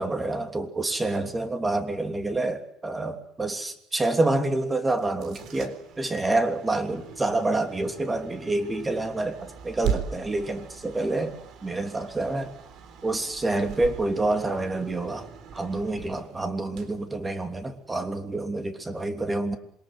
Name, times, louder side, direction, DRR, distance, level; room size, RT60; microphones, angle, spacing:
voice 1, 0.0-11.4 11.6-12.5 13.0-19.6, right 2 dB, 15° right, 7 dB, 3.1 m, -28 dB
sound 1, 4.9-17.9, right 7 dB, 55° right, 4.0 m, -39 dB
27.0 x 23.0 x 7.9 m, 0.68 s
cardioid pair, 125°, 0 cm